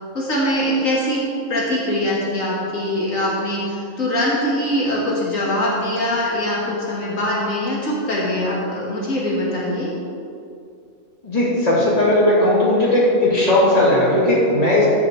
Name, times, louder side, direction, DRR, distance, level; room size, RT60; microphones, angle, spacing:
voice 1, 0.1-1.2 1.5-9.9, left 1 dB, 75° left, -5 dB, 1.9 m, -22 dB
voice 2, 11.2-14.9, left 1 dB, 30° left, -6 dB, 2.4 m, -16 dB
14.0 x 5.0 x 4.4 m, 2.4 s
omnidirectional pair, 1.4 m